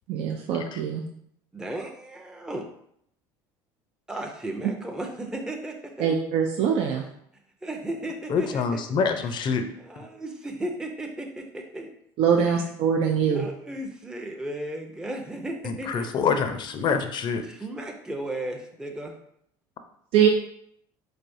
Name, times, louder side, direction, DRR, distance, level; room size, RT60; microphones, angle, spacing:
voice 1, 0.1-1.0 6.0-7.0 12.2-13.5 20.1-20.3, right 7 dB, 65° right, 1 dB, 0.4 m, -23 dB
voice 2, 1.5-2.6 4.1-6.1 7.6-8.8 9.4-9.5 9.8-11.9 12.4-12.6 13.3-16.1 17.4-19.1, right 1 dB, 5° right, 2 dB, 0.5 m, -35 dB
voice 3, 8.3-9.7 10.0-10.1 15.6-17.4, left 5 dB, 45° left, 8 dB, 0.5 m, -26 dB
4.1 x 3.3 x 2.6 m, 0.71 s
supercardioid pair, 90°, 10 cm